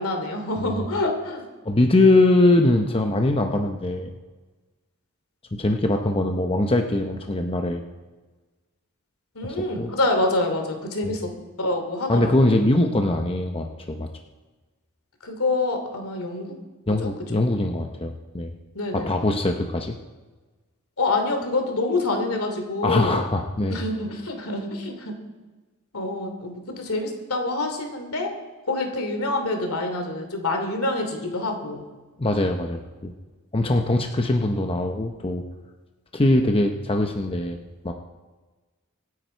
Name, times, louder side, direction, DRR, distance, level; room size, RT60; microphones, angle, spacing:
voice 1, 0.0-1.4 9.3-11.3 11.6-12.5 15.2-16.5 16.9-17.1 18.7-19.2 21.0-23.2 23.7-25.1 25.9-28.3 28.7-31.8, left 2 dB, 75° left, 5 dB, 2.9 m, -26 dB
voice 2, 1.6-4.1 5.5-7.8 9.8-9.9 11.0-11.1 12.1-14.1 16.9-18.6 18.9-20.0 22.8-23.8 32.2-33.1 33.5-35.4 36.1-37.6 37.8-37.9, left 2 dB, 25° left, 4 dB, 0.8 m, -22 dB
25.0 x 9.8 x 4.5 m, 1.3 s
head